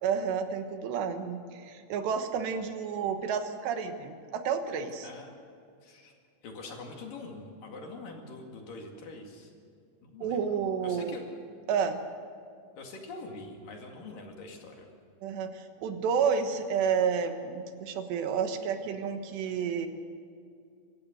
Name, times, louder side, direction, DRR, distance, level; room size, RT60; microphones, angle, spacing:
voice 1, 0.0-5.1 10.2-11.2 11.7-12.0 15.2-19.9, right 6 dB, 80° right, 7 dB, 3.4 m, -30 dB
voice 2, 5.8-6.1 6.4-9.5 10.0-11.2 12.8-14.9, left 3 dB, 55° left, 1 dB, 3.6 m, -44 dB
25.5 x 15.5 x 7.9 m, 2.3 s
omnidirectional pair, 5.0 m